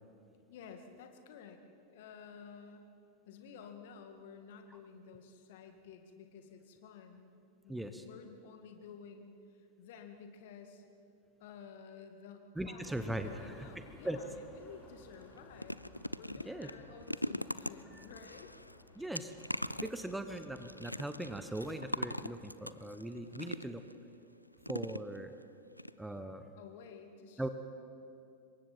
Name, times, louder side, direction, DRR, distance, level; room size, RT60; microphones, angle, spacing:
voice 1, 0.5-1.6 1.9-2.9 3.3-7.3 7.6-10.8 11.4-15.9 16.2-18.5 26.6-27.4, left 6 dB, 55° left, 5 dB, 2.1 m, -52 dB
voice 2, 7.7-8.0 12.6-13.7 14.0-14.2 16.5-16.7 17.9-18.0 18.9-19.3 19.8-23.8 24.7-25.3 26.0-26.5 27.4-27.5, right 1 dB, 5° right, 8 dB, 1.0 m, -40 dB
sound 1, 12.8-22.5, left 2 dB, 20° left, 3.3 m, -58 dB
sound 2, 14.6-14.8 15.1-23.9 24.6-25.4 25.8-25.9 26.2-26.3, left 1 dB, 90° left, 0.4 m, -42 dB
27.0 x 23.0 x 4.4 m, 2.6 s
figure-of-eight pair, 90°, 0 cm